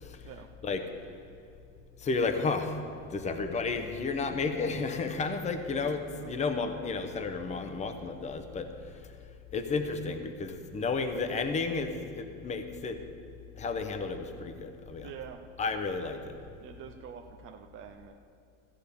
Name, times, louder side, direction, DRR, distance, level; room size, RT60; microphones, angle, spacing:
voice 1, 2.0-2.7 3.1-8.7 9.5-13.0 13.6-15.1 15.6-16.3, left 4 dB, 20° left, 7 dB, 0.8 m, -32 dB
voice 2, 6.2-6.5 15.0-15.4 16.6-18.1, right 8 dB, 35° right, 4 dB, 0.6 m, -46 dB
14.0 x 5.1 x 8.3 m, 2.5 s
supercardioid pair, 125°, 38 cm